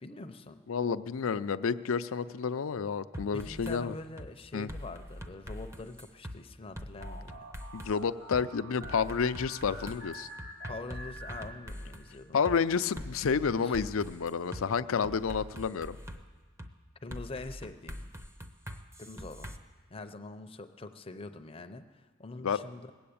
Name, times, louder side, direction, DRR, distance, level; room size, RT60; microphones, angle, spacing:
voice 1, 0.0-0.6 3.3-7.5 10.6-12.5 13.6-13.7 17.0-18.1 19.0-19.5 19.9-22.9, left 2 dB, 25° left, 8 dB, 0.6 m, -44 dB
voice 2, 0.7-3.9 4.5-4.7 7.7-10.3 12.3-16.0 22.4-22.6, left 6 dB, 75° left, 13 dB, 0.5 m, -30 dB
sound 1, 3.1-3.8 4.2-4.3 4.7-6.4 6.8-7.9 8.3-8.4 8.8-12.1 12.5-12.6 13.0-14.6 15.0-16.2 16.6-16.7 17.1-19.6, equal, 15° right, 0.7 m, -43 dB
sound 2, 7.0-12.1, right 1 dB, 70° right, 2.0 m, -47 dB
20.0 x 7.9 x 8.6 m, 1.4 s
head